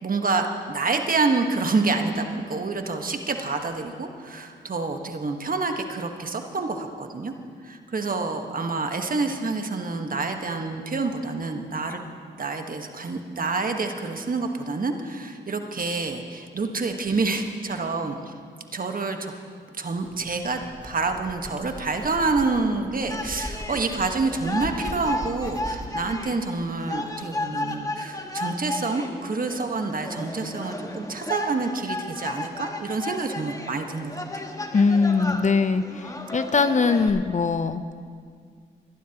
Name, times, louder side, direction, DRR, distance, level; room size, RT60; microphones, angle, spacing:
voice 1, 0.0-7.3 7.6-12.0 12.4-18.3 18.7-19.3 19.8-34.4, right 3 dB, 45° right, 5 dB, 1.4 m, -27 dB
sound 1, 20.0-26.1, equal, 5° right, 1.2 m, -40 dB
sound 2, 23.1-37.1, left 2 dB, 15° left, 1.6 m, -34 dB
voice 2, 34.7-38.0, left 4 dB, 35° left, 12 dB, 0.7 m, -22 dB
22.5 x 12.0 x 3.0 m, 2.1 s
supercardioid pair, 45°, 20 cm